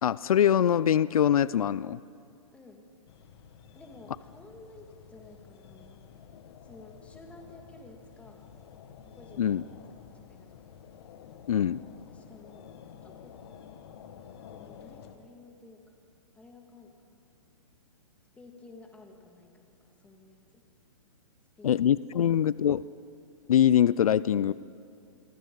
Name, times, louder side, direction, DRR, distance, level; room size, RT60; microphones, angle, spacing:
voice 1, 0.0-2.0 9.4-9.6 11.5-11.8 21.6-22.8 23.5-24.5, left 9 dB, 80° left, 19 dB, 0.4 m, -23 dB
voice 2, 2.5-2.9 3.7-6.0 6.6-8.5 9.1-9.6 9.9-10.7 12.1-12.7 13.0-13.4 14.5-15.9 16.3-17.2 18.4-20.6 21.6-21.7 22.3-22.4, left 2 dB, 5° left, 2 dB, 2.0 m, -53 dB
sound 1, 3.1-15.2, left 8 dB, 50° left, 1.7 m, -51 dB
29.0 x 23.0 x 3.9 m, 2.4 s
hypercardioid pair, 145°, 18 cm